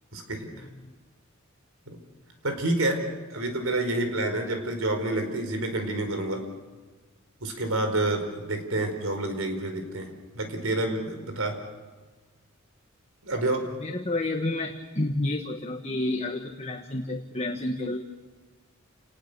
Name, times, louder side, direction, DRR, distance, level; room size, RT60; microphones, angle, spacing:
voice 1, 0.1-0.7 1.9-2.0 2.4-3.0 3.3-6.4 7.4-10.1 10.4-11.6 13.2-13.7, right 2 dB, 90° right, 6 dB, 4.7 m, -28 dB
voice 2, 13.8-18.0, left 2 dB, 30° left, 3 dB, 1.4 m, -30 dB
29.5 x 19.5 x 6.8 m, 1.3 s
head